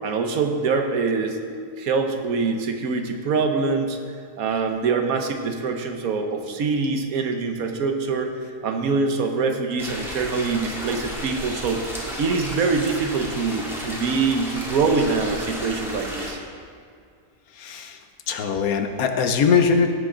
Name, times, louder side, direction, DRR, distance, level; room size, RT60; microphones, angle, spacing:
voice 1, 0.0-4.0 4.4-11.8 12.2-16.4, right 4 dB, 75° right, 5 dB, 1.4 m, -24 dB
sound 1, 9.8-16.3, equal, ahead, 1.9 m, -33 dB
voice 2, 17.6-18.0 18.3-19.9, left 6 dB, 80° left, 6 dB, 1.3 m, -21 dB
16.5 x 7.2 x 3.8 m, 2.3 s
omnidirectional pair, 1.5 m